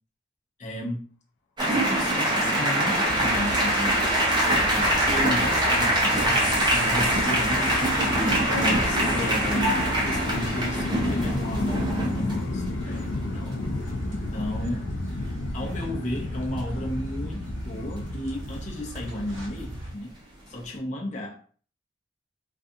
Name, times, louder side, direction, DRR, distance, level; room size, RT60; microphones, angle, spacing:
voice 1, 0.6-1.1 1.6-4.1 4.7-8.1 8.5-13.6 14.1-14.9 15.5-20.2 20.5-21.4, left 1 dB, 40° left, -2 dB, 0.6 m, -33 dB
sound 1, 1.6-12.4 14.3-14.4 14.7-14.9 19.0-19.2, right 1 dB, 25° right, 0.7 m, -24 dB
sound 2, 3.0-19.9, right 1 dB, 85° right, 0.7 m, -37 dB
sound 3, 3.6-19.8, left 3 dB, 80° left, 0.4 m, -33 dB
2.5 x 2.3 x 2.6 m, 0.43 s
head